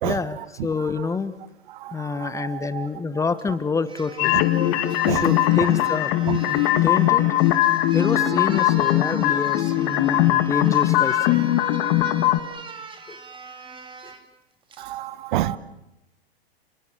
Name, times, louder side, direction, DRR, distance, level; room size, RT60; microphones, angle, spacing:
voice 1, 0.0-1.3 1.9-4.4 5.1-6.1 6.5-7.3 7.9-11.5 13.1-13.2 14.0-14.1, left 4 dB, 10° left, 14 dB, 1.1 m, -27 dB
voice 2, 1.8-2.9 4.3-4.4 5.0-5.2 6.3-6.7 14.8-15.6, right 14 dB, 50° right, 17 dB, 1.2 m, -29 dB
sound 1, 3.4-3.5 3.9-14.2 14.7-14.9, right 4 dB, 15° right, 2.5 m, -40 dB
sound 2, 4.2-12.4, left 14 dB, 40° left, 2.0 m, -20 dB
30.0 x 21.0 x 7.5 m, 0.91 s
hypercardioid pair, 120°, 31 cm